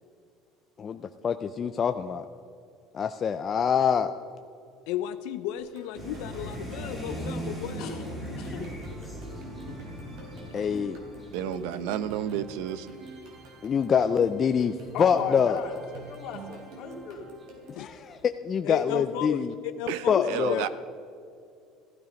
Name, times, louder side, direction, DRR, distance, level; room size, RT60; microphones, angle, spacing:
voice 1, 1.6-2.3 2.9-4.1 10.5-11.0 13.6-15.6 17.8-19.5 20.1-20.6, left 7 dB, 30° left, 8 dB, 0.4 m, -25 dB
voice 2, 4.9-7.8 17.7-18.0 18.6-20.7, left 11 dB, 80° left, 10 dB, 0.6 m, -34 dB
sound 1, 5.6-17.9, right 2 dB, 65° right, 3.6 m, -47 dB
sound 2, 6.0-16.9 17.4-17.8 18.1-18.2, equal, 10° right, 2.9 m, -40 dB
voice 3, 10.5-10.9 11.4-11.9 14.9-17.3, left 6 dB, 60° left, 1 dB, 2.6 m, -37 dB
voice 4, 11.3-12.9 19.9-20.7, right 11 dB, 80° right, 14 dB, 0.7 m, -31 dB
15.0 x 12.5 x 5.2 m, 2.4 s
cardioid pair, 145°, 0 cm